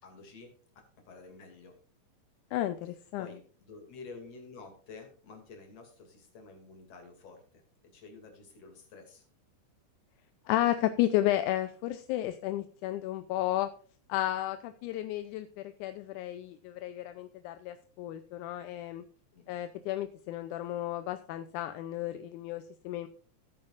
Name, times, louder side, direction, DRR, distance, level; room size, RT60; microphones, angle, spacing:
voice 1, 0.0-0.5 1.1-1.8 3.2-7.6 7.9-9.2 19.3-19.9, left 4 dB, 55° left, 4 dB, 3.4 m, -50 dB
voice 2, 2.5-3.3 10.5-13.7 14.1-19.0 19.5-23.1, left 14 dB, 85° left, 10 dB, 2.1 m, -32 dB
16.0 x 8.8 x 2.5 m, 0.43 s
omnidirectional pair, 3.6 m